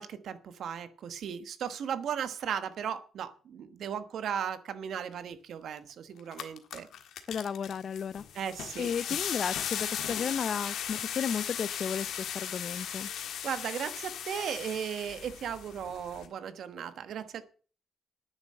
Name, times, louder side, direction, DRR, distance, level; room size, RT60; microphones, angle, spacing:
voice 1, 0.0-6.9 8.3-8.9 13.4-17.4, right 8 dB, 70° right, 1.2 m, -36 dB
sound 1, 5.8-5.9 6.2-16.3, left 9 dB, 85° left, 1.6 m, -37 dB
voice 2, 7.3-8.2 8.8-13.1, left 7 dB, 55° left, 0.5 m, -34 dB
9.8 x 7.3 x 7.6 m
cardioid pair, 110°, 0 cm